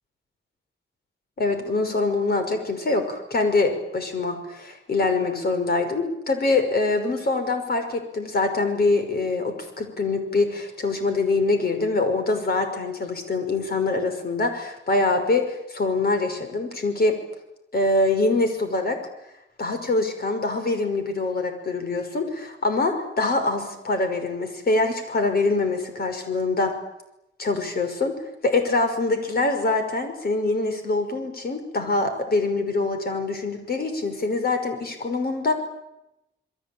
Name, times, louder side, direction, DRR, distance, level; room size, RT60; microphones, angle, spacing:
voice 1, 1.4-17.2 17.7-19.0 19.6-26.8 27.4-28.1 28.4-35.5, left 3 dB, 55° left, 6 dB, 5.9 m, -24 dB
28.5 x 22.0 x 8.9 m, 0.87 s
wide cardioid pair, 180°, 20 cm